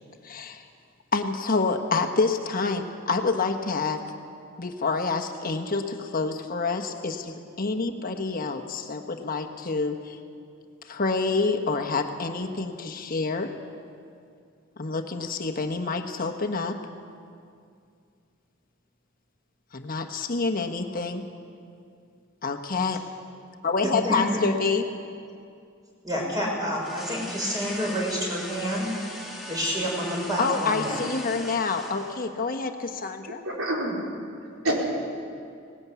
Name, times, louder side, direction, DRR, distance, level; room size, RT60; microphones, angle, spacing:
voice 1, 0.2-0.6 1.1-4.0 4.6-10.2 10.8-13.5 14.8-16.8 19.7-21.2 22.4-23.0 23.6-24.9 30.4-33.4, left 4 dB, 45° left, 5 dB, 1.3 m, -27 dB
voice 2, 26.0-29.1 29.5-31.0, equal, 20° right, -2 dB, 5.4 m, -28 dB
sound 1, 26.7-32.4, left 1 dB, ahead, 2.6 m, -40 dB
voice 3, 33.3-34.1 34.6-34.7, right 1 dB, 90° right, -2 dB, 4.7 m, -28 dB
19.0 x 17.0 x 8.4 m, 2.4 s
head